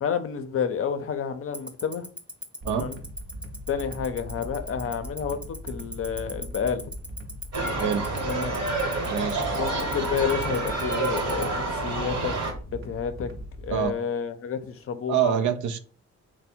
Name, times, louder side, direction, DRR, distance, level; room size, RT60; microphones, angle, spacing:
voice 1, 0.0-2.1 2.7-3.0 3.7-6.8 8.2-8.6 9.5-12.3 12.7-13.3 13.6-15.3, left 7 dB, 45° left, 0.5 m, -30 dB
Tick-tock, 1.5-11.4, right 1 dB, 5° right, 0.6 m, -36 dB
sound 1, 2.6-13.9, equal, 40° right, 0.7 m, -40 dB
sound 2, 7.5-12.5, right 3 dB, 55° right, 1.2 m, -28 dB
voice 2, 9.1-9.5 13.7-13.9 15.1-15.8, right 9 dB, 75° right, 0.5 m, -25 dB
3.3 x 2.1 x 4.2 m
cardioid pair, 90°, 30 cm